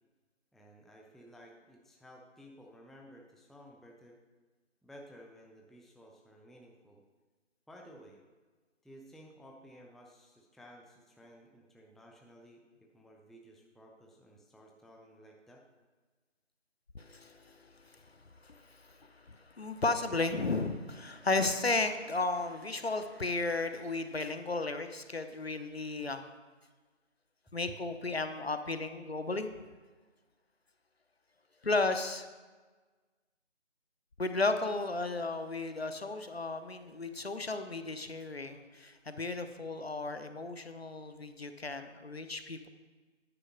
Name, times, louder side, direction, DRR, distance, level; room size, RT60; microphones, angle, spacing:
voice 1, 0.5-4.2 4.8-7.0 7.7-8.2 8.8-15.6, equal, ahead, -1 dB, 0.4 m, -55 dB
voice 2, 16.9-18.0 18.4-26.2 27.5-29.5 31.6-32.3 34.2-42.7, left 3 dB, 55° left, 9 dB, 0.7 m, -34 dB
9.9 x 4.6 x 6.3 m, 1.3 s
figure-of-eight pair, 175°, 37 cm